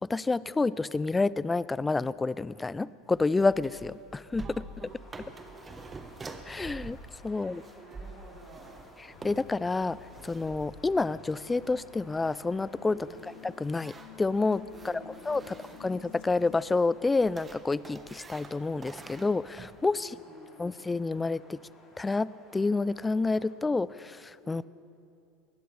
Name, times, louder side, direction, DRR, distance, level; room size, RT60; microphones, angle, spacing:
voice 1, 0.0-4.4 6.5-7.0 7.2-7.6 9.2-10.0 10.2-13.0 13.4-20.2 20.6-21.6 22.0-24.6, left 3 dB, 15° left, 20 dB, 0.4 m, -29 dB
sound 1, 3.1-19.8, right 3 dB, 20° right, 1.2 m, -48 dB
voice 2, 4.4-5.9 7.3-8.9 12.9-13.4 14.7-15.9 20.0-20.8 24.4-24.7, right 3 dB, 40° right, -2 dB, 3.8 m, -51 dB
sound 2, 4.9-23.5, left 2 dB, 30° left, 3.9 m, -57 dB
sound 3, 9.1-16.6, left 10 dB, 65° left, 0.9 m, -53 dB
22.0 x 18.5 x 3.4 m, 2.6 s
hypercardioid pair, 85°, 0 cm